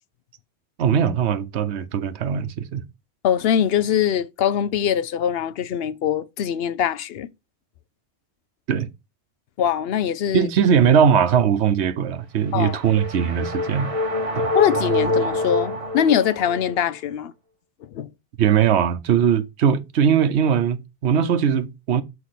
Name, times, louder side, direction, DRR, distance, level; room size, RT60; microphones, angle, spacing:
voice 1, 0.8-2.8 8.7-8.9 10.3-13.9 14.4-14.5 18.4-22.0, right 8 dB, 80° right, 1.0 m, -20 dB
voice 2, 3.2-7.3 9.6-10.5 12.5-12.8 14.5-17.3 17.9-18.1, left 9 dB, 70° left, 0.8 m, -22 dB
sound 1, 12.4-16.8, left 2 dB, 35° right, 0.9 m, -25 dB
6.6 x 4.8 x 4.1 m
omnidirectional pair, 1.1 m